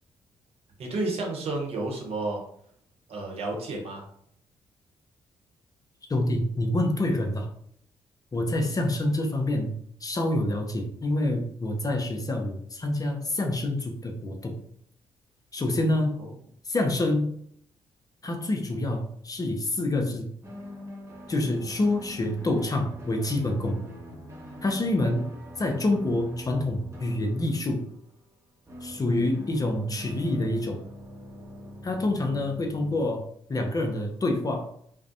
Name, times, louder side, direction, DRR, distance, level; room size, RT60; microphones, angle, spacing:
voice 1, 0.8-2.4 3.1-4.0 16.2-16.3, right 2 dB, 60° right, 0 dB, 0.9 m, -31 dB
voice 2, 6.1-7.5 8.3-9.7 10.0-14.6 15.5-16.2 16.7-17.3 18.2-20.3 21.3-23.8 24.6-25.3 25.6-27.8 28.8-30.8 31.8-33.2 33.5-34.7, left 1 dB, 30° left, 3 dB, 0.6 m, -27 dB
sound 1, 20.4-28.4 28.7-33.1, equal, 25° right, 0.8 m, -44 dB
2.5 x 2.0 x 2.6 m, 0.66 s
hypercardioid pair, 40°, 12 cm